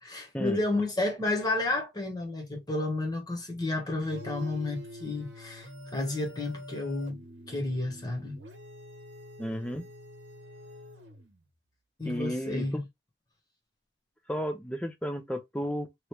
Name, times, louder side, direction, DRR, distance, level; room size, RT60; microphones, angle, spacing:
voice 1, 0.0-8.4 12.0-12.8, left 2 dB, 25° left, 1.0 m, -31 dB
sound 1, 4.0-11.5, equal, 85° right, 0.8 m, -46 dB
voice 2, 9.4-9.8 12.0-12.8 14.3-16.1, equal, 5° left, 0.5 m, -33 dB
3.0 x 2.5 x 3.2 m
head